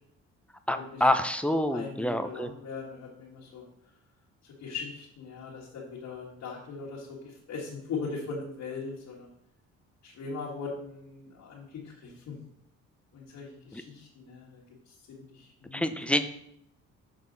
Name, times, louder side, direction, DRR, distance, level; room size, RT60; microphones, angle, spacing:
voice 1, 0.7-2.5 13.7-13.8 15.7-16.3, left 1 dB, 5° left, 8 dB, 0.5 m, -27 dB
voice 2, 1.7-3.7 4.4-9.3 10.0-12.3 13.1-16.2, left 4 dB, 70° left, -5 dB, 1.7 m, -40 dB
6.3 x 5.5 x 4.0 m, 0.76 s
cardioid pair, 90°, 30 cm